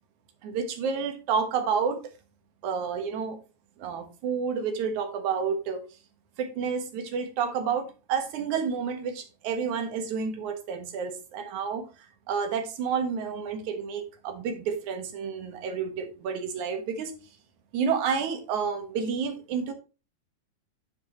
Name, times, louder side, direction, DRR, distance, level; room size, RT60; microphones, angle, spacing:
voice 1, 0.4-2.0 2.6-3.4 3.8-5.8 6.4-11.9 12.3-17.1 17.7-19.7, right 6 dB, 80° right, 7 dB, 2.8 m, -30 dB
9.6 x 7.1 x 3.0 m, 0.32 s
omnidirectional pair, 3.4 m